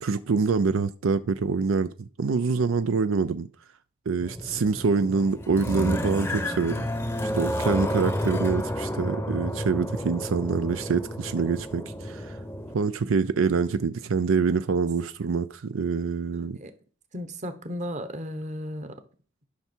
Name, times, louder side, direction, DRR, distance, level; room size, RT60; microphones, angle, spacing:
voice 1, 0.0-3.5 4.1-6.9 7.3-12.4 12.7-16.6, right 4 dB, 85° right, 0.5 m, -25 dB
sound 1, 4.2-12.7, equal, 10° left, 0.7 m, -31 dB
voice 2, 16.3-16.7 17.1-18.9, equal, 35° right, 1.1 m, -35 dB
11.5 x 5.9 x 4.4 m
head